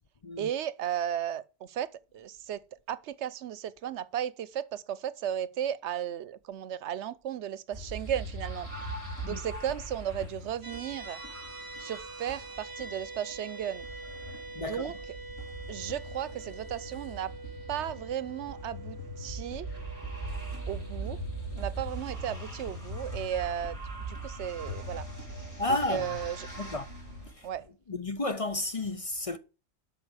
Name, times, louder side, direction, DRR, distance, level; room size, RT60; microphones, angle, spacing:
voice 1, 0.4-8.7 9.3-11.2 11.8-13.9 14.6-15.0 15.7-17.3 17.7-19.7 20.7-21.2 21.5-23.8 24.1-25.1 25.7-26.5 27.4-27.7, right 10 dB, 80° right, 1.0 m, -35 dB
sound 1, 7.7-27.6, right 1 dB, 15° left, 4.2 m, -41 dB
sound 2, 10.6-21.8, right 3 dB, 20° right, 1.0 m, -45 dB
voice 2, 14.5-14.9 25.6-26.1 26.6-26.9 27.3-27.5 27.9-29.4, left 2 dB, 35° left, 0.7 m, -32 dB
sound 3, 19.5-27.3, equal, 75° left, 3.3 m, -47 dB
8.1 x 6.0 x 7.9 m
omnidirectional pair, 1.2 m